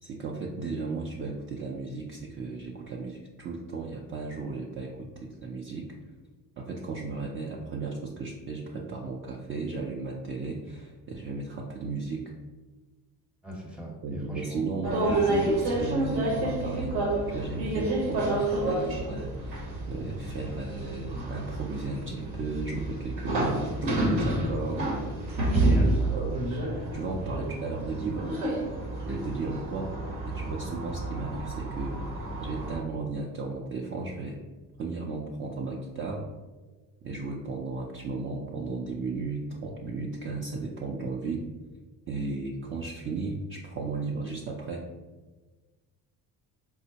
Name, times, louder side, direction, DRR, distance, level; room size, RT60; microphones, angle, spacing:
voice 1, 0.0-5.9 6.6-12.2 14.0-16.9 17.3-19.6 19.9-24.8 25.6-26.3 26.9-28.3 29.0-30.0 30.2-34.4 34.8-36.2 37.0-41.4 42.1-44.9, right 3 dB, 35° right, -1 dB, 0.4 m, -35 dB
voice 2, 13.4-14.7 25.4-26.2 29.0-29.2, equal, 5° right, -1 dB, 0.8 m, -38 dB
sound 1, 14.8-32.8, right 1 dB, 80° right, 1.0 m, -29 dB
4.3 x 2.1 x 2.7 m, 1.3 s
cardioid pair, 105°, 35 cm